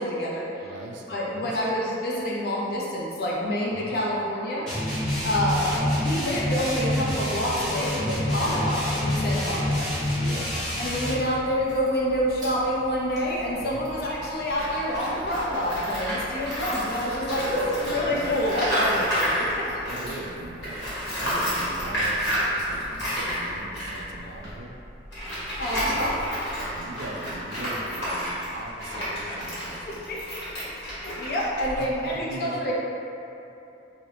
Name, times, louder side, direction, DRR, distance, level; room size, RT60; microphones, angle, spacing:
voice 1, 0.0-0.7 1.1-4.7 5.2-9.9 10.8-19.7 25.6-26.2 30.1-30.4 30.9-32.7, equal, 55° left, -4 dB, 0.6 m, -27 dB
voice 2, 0.6-1.6 3.7-4.0 5.5-6.2 9.4-9.9 10.1-10.6 13.6-13.9 17.4-18.3 19.4-24.8 26.6-30.0 31.7-32.7, right 2 dB, 75° right, 0 dB, 0.4 m, -40 dB
sound 1, 4.7-11.3, left 1 dB, 5° left, 1.2 m, -27 dB
Chewing mastication, 5.1-24.5, equal, 20° right, 0.8 m, -45 dB
Tools, 14.6-20.3 20.6-32.1, equal, 80° left, 1.4 m, -31 dB
2.8 x 2.7 x 3.3 m, 2.9 s
head